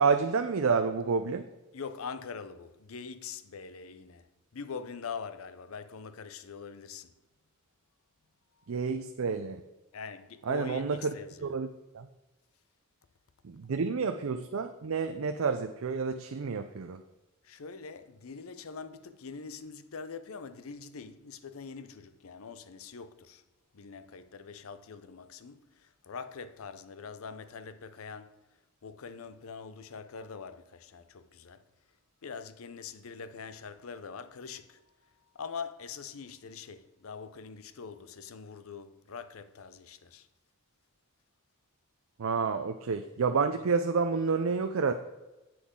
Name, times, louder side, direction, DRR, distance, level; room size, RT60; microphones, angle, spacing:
voice 1, 0.0-1.5 8.7-9.6 10.5-11.1 11.4-11.7 11.9-12.1 13.4-17.0 42.2-44.9, right 5 dB, 70° right, 0.5 m, -29 dB
voice 2, 1.7-4.3 4.5-7.1 9.9-11.5 17.4-23.4 23.7-28.4 28.8-31.6 32.2-40.3, left 5 dB, 75° left, 0.6 m, -43 dB
10.0 x 7.7 x 3.7 m
head